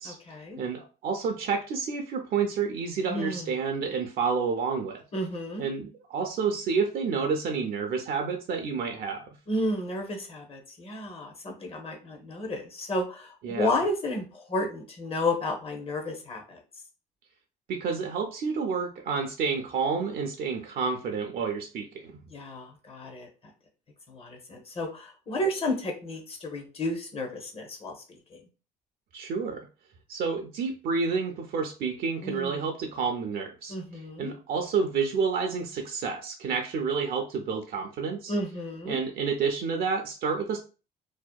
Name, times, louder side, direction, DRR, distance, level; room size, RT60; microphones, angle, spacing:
voice 1, 0.1-0.6 3.1-3.5 5.1-5.6 9.5-16.6 22.3-23.3 24.1-27.9 28.3-28.4 32.2-32.6 33.7-34.3 38.3-39.0, left 1 dB, 35° left, 3 dB, 0.8 m, -32 dB
voice 2, 0.6-5.0 5.6-9.3 13.4-13.7 17.7-22.2 29.1-29.7 30.1-38.4 38.9-40.6, right 5 dB, 60° right, 3 dB, 0.4 m, -29 dB
2.6 x 2.1 x 2.3 m, 0.33 s
cardioid pair, 110°, 17 cm